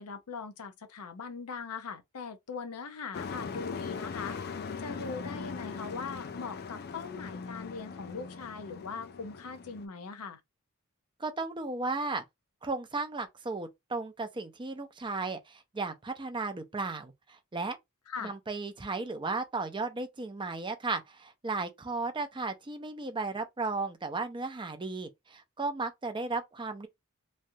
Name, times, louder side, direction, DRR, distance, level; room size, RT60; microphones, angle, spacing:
voice 1, 0.0-4.4 4.8-10.4 18.1-18.3, left 5 dB, 90° left, 0.7 m, -40 dB
Truck, 3.1-9.9, left 5 dB, 45° left, 0.4 m, -40 dB
voice 2, 11.2-12.2 12.6-17.8 18.2-26.9, right 3 dB, 20° right, 0.5 m, -35 dB
3.1 x 2.4 x 2.6 m
head